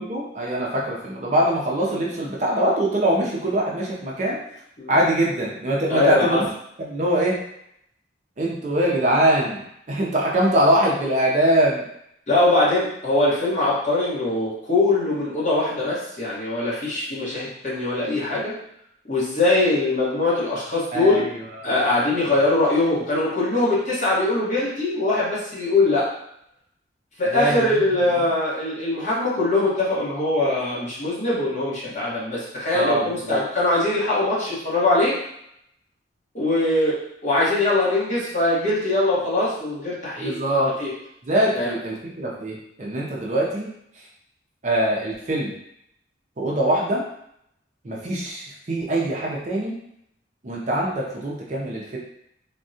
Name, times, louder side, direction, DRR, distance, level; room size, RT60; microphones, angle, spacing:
voice 1, 0.0-4.4 4.9-6.5 6.8-7.4 8.4-9.6 9.9-11.8 20.9-21.7 27.3-27.8 32.7-33.4 40.2-40.7 41.2-43.7 44.6-45.5 46.4-47.0 47.8-49.8 50.4-52.0, right 1 dB, 40° right, -3 dB, 0.5 m, -23 dB
voice 2, 5.9-6.4 12.3-18.5 19.1-21.3 21.6-26.1 27.2-35.2 36.3-40.4 40.8-40.9 41.5-41.7, left 2 dB, 40° left, -8 dB, 1.2 m, -22 dB
3.5 x 2.2 x 2.7 m, 0.74 s
head